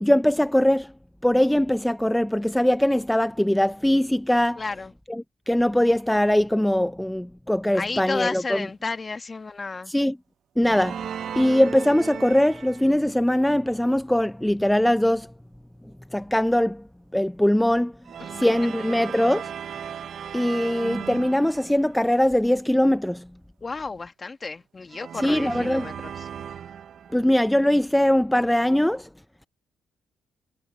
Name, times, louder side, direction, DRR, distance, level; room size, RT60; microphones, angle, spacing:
voice 1, 0.0-0.9 1.2-4.6 5.1-8.4 9.9-10.2 10.6-11.0 11.3-15.3 16.1-16.8 17.1-17.9 18.4-19.5 20.3-23.2 25.2-25.9 27.1-29.1, left 1 dB, 5° left, 0.4 m, -21 dB
voice 2, 4.5-4.9 7.7-9.9 18.2-18.4 23.6-26.3, left 4 dB, 30° left, 1.6 m, -32 dB
sound 1, 10.6-13.1 18.1-22.1 24.9-27.4, right 8 dB, 65° right, 0.7 m, -36 dB
cardioid pair, 80°, 0 cm